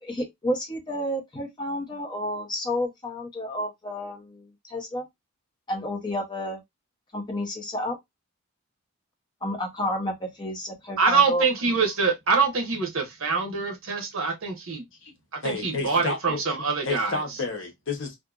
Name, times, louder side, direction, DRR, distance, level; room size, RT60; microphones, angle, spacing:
voice 1, 0.0-5.1 5.7-6.6 7.1-8.0 9.4-11.5, equal, 20° left, 0.7 m, -30 dB
voice 2, 11.0-14.8 15.3-17.2, right 5 dB, 65° right, 0.9 m, -24 dB
voice 3, 15.4-16.4 16.8-18.2, left 4 dB, 60° left, 0.9 m, -30 dB
2.7 x 2.4 x 2.3 m
head